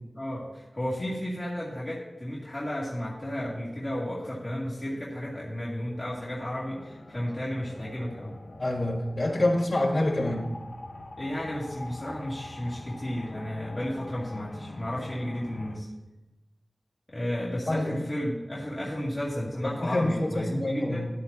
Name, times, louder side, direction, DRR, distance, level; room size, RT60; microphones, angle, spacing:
voice 1, 0.1-8.3 11.2-15.9 17.1-21.1, equal, 35° left, -7 dB, 2.5 m, -33 dB
sound 1, 5.3-15.8, left 2 dB, 80° left, 1.1 m, -45 dB
voice 2, 8.6-10.4 17.7-18.0 19.6-21.1, left 1 dB, 60° left, -5 dB, 4.1 m, -27 dB
13.5 x 11.5 x 2.9 m, 1.1 s
wide cardioid pair, 70°, 0 cm